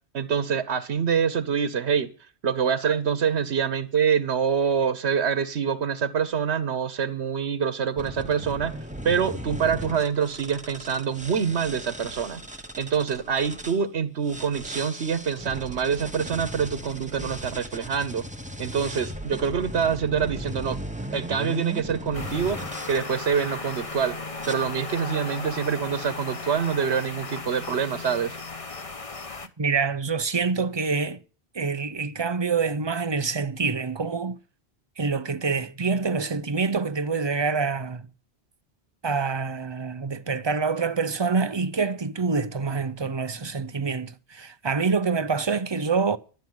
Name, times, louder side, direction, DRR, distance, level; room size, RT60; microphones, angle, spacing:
voice 1, 0.1-2.1 2.4-8.8 9.0-12.4 12.8-18.2 18.6-20.8 21.1-22.6 22.9-24.2 24.4-28.4, right 7 dB, 85° right, 1.2 m, -25 dB
sound 1, 8.0-13.8 14.2-23.0 23.7-24.0 24.4-24.5, equal, 5° right, 1.0 m, -37 dB
sound 2, 22.1-29.5, left 3 dB, 35° left, 1.1 m, -36 dB
voice 2, 29.6-31.2 31.5-34.4 35.0-38.1 39.0-46.2, right 4 dB, 30° right, 0.7 m, -26 dB
12.0 x 7.6 x 9.5 m
omnidirectional pair, 1.1 m